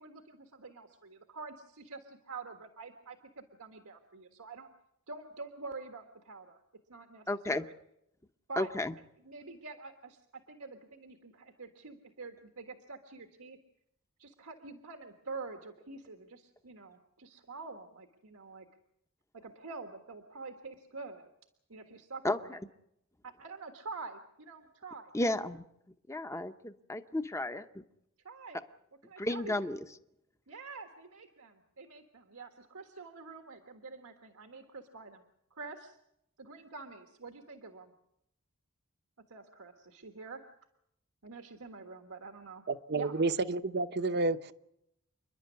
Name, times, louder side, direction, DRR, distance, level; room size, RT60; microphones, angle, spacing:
voice 1, 0.0-4.7 5.1-6.6 6.9-7.7 8.5-8.7 9.2-13.6 14.2-18.7 19.4-21.3 21.7-22.6 23.2-25.1 28.2-28.6 29.1-29.7 30.5-35.2 35.5-36.0 36.4-37.9 39.3-40.4 41.2-42.6 42.9-43.3, right 4 dB, 85° right, 1.6 m, -47 dB
voice 2, 7.3-7.6 8.6-8.9 22.2-22.6 25.1-25.6 26.1-27.8 29.2-29.8, left 1 dB, 15° left, 0.8 m, -33 dB
voice 3, 42.7-44.5, right 3 dB, 50° right, 0.8 m, -30 dB
28.5 x 11.0 x 9.5 m
head